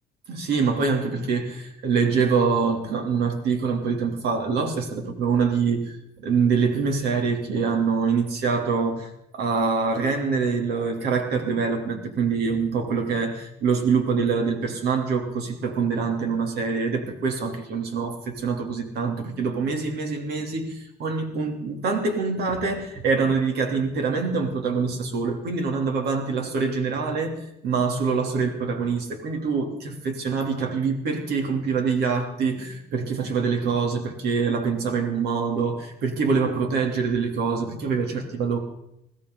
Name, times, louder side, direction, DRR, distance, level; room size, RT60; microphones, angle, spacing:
voice 1, 0.3-27.3 27.6-38.6, right 5 dB, 70° right, 4 dB, 3.1 m, -25 dB
21.0 x 15.5 x 3.9 m, 0.82 s
cardioid pair, 110°, 17 cm